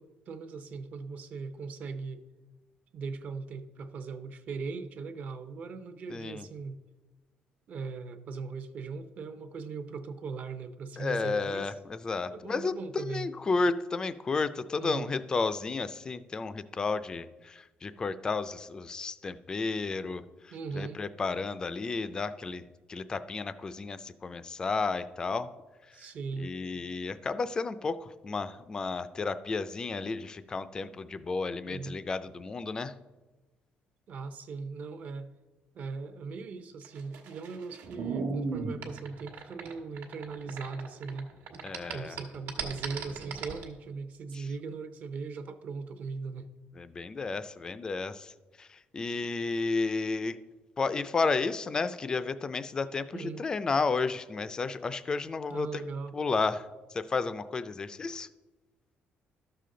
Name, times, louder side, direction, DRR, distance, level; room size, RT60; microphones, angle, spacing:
voice 1, 0.0-2.2 2.9-6.8 7.7-11.7 12.3-13.3 14.8-15.1 20.5-21.0 25.9-26.5 31.6-32.0 34.1-35.3 35.7-41.3 41.9-46.5 53.1-53.4 55.5-56.2, right 4 dB, 45° right, 10 dB, 0.6 m, -39 dB
voice 2, 6.1-6.5 11.0-22.6 22.9-25.5 26.0-26.1 26.4-32.9 41.6-42.2 44.3-44.5 46.8-48.3 48.6-50.4 50.8-55.8 56.1-58.3, left 4 dB, 20° left, 13 dB, 0.3 m, -32 dB
sound 1, 36.9-41.2 41.5-43.6, right 4 dB, 85° right, 1.3 m, -36 dB
12.0 x 6.7 x 3.8 m, 1.2 s
cardioid pair, 180°, 4 cm